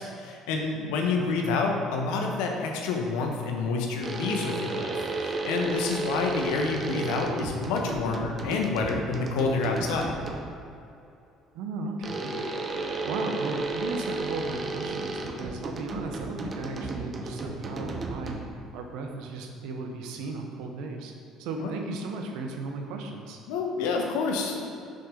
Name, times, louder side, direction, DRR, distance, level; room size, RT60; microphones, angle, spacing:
voice 1, 0.0-4.9 5.2-10.1 21.6-21.7 23.5-24.6, left 4 dB, 70° left, 1 dB, 1.1 m, -28 dB
voice 2, 1.2-1.5 11.5-12.3 13.0-21.1 21.4-23.4, right 3 dB, 70° right, 3 dB, 1.0 m, -36 dB
sound 1, 4.0-10.6 12.0-18.7, right 2 dB, 35° right, 0.9 m, -33 dB
6.5 x 5.9 x 5.2 m, 2.7 s
hypercardioid pair, 60°, 0 cm